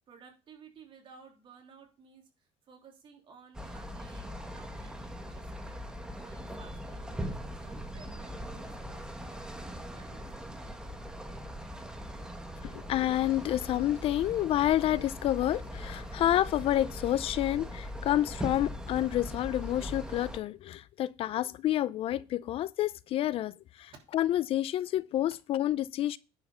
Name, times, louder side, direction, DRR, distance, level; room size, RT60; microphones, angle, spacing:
voice 1, 0.1-10.7, right 6 dB, 45° right, 3.1 m, -56 dB
sound 1, 3.5-20.4, equal, 5° right, 1.5 m, -40 dB
voice 2, 12.6-26.2, left 13 dB, 50° left, 0.4 m, -29 dB
10.5 x 5.8 x 5.5 m
cardioid pair, 140°, 13 cm